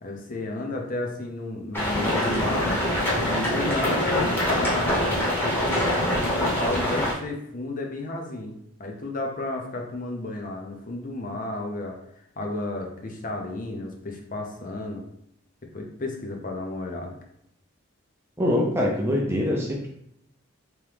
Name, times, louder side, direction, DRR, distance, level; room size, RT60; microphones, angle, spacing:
voice 1, 0.0-2.8 3.2-5.1 6.1-8.5 8.8-15.0 15.6-17.2, left 2 dB, 40° left, 1 dB, 0.6 m, -32 dB
sound 1, 1.7-7.1, left 1 dB, 10° left, 0.9 m, -24 dB
voice 2, 18.4-19.9, left 1 dB, 10° right, -1 dB, 0.4 m, -24 dB
3.5 x 3.1 x 3.4 m, 0.75 s
head